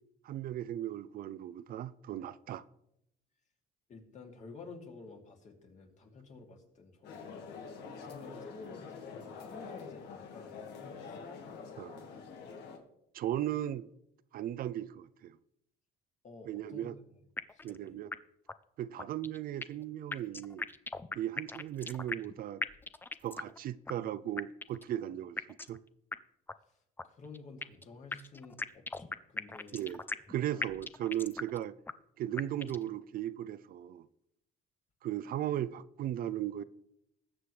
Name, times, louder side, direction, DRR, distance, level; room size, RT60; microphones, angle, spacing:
voice 1, 0.2-2.6 11.8-12.1 13.1-13.9 14.3-15.4 16.5-17.0 17.6-18.1 18.8-20.7 21.1-22.6 23.2-25.8 29.7-30.0 30.3-31.7 32.2-34.1 35.0-36.6, right 12 dB, 60° right, 0.5 m, -37 dB
voice 2, 3.9-7.4 7.9-11.3 16.2-16.9 17.5-18.0 26.7-26.8 27.0-29.8 30.6-30.7, left 4 dB, 45° left, 2.7 m, -52 dB
sound 1, 7.0-12.8, left 5 dB, 80° left, 1.8 m, -46 dB
sound 2, 17.4-17.8 18.1-18.2 18.5-18.6 19.0-19.8 20.1-22.3 22.6-23.6 23.9-24.0 24.4-24.9 25.4-25.8 26.1-26.2 26.5-26.6 27.0-27.8 28.1-30.3 30.6-31.6 31.9-32.0 32.4-32.9, left 3 dB, 10° left, 0.5 m, -38 dB
20.0 x 7.5 x 3.3 m
cardioid pair, 110°, 17 cm